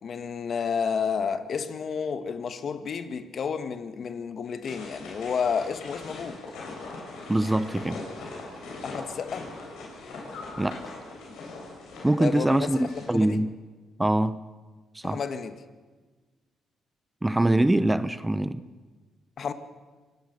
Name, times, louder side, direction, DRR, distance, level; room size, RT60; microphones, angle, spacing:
voice 1, 0.0-6.4 8.8-9.5 12.2-13.4 15.0-15.5 19.4-19.5, left 6 dB, 50° left, 1.5 m, -31 dB
sound 1, 4.6-13.1, left 3 dB, 85° left, 7.3 m, -41 dB
voice 2, 7.3-8.0 10.6-10.8 12.0-13.5 14.0-14.4 14.9-15.2 17.2-18.6, right 1 dB, 10° right, 0.7 m, -24 dB
25.5 x 17.5 x 6.7 m
cardioid pair, 90°, 0 cm